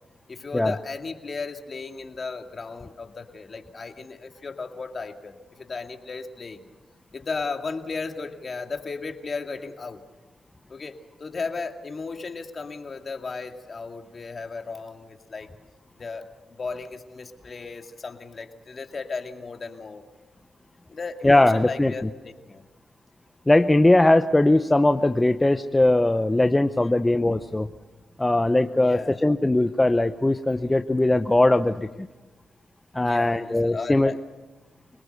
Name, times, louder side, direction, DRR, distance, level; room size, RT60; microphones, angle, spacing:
voice 1, 0.3-6.6 7.1-10.0 10.7-15.5 16.0-16.2 16.6-20.0 20.9-22.6 26.8-27.0 28.8-29.2 33.0-34.2, left 4 dB, 50° left, 5 dB, 2.3 m, -35 dB
voice 2, 21.2-21.9 23.5-27.7 28.2-31.9 32.9-34.1, left 1 dB, 20° left, 9 dB, 0.8 m, -20 dB
26.5 x 19.0 x 6.8 m, 1.2 s
supercardioid pair, 50°, 0 cm